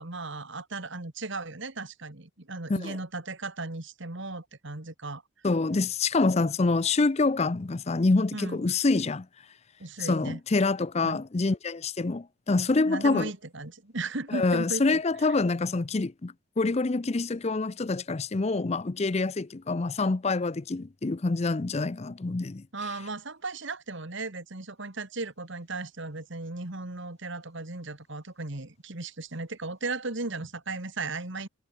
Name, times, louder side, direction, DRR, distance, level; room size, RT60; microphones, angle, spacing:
voice 1, 0.0-5.2 8.3-8.7 9.8-10.4 11.0-11.2 12.9-15.0 22.7-31.5, right 3 dB, 55° right, 2.0 m, -36 dB
voice 2, 5.4-9.3 10.0-13.3 14.3-22.6, left 3 dB, 30° left, 0.5 m, -26 dB
head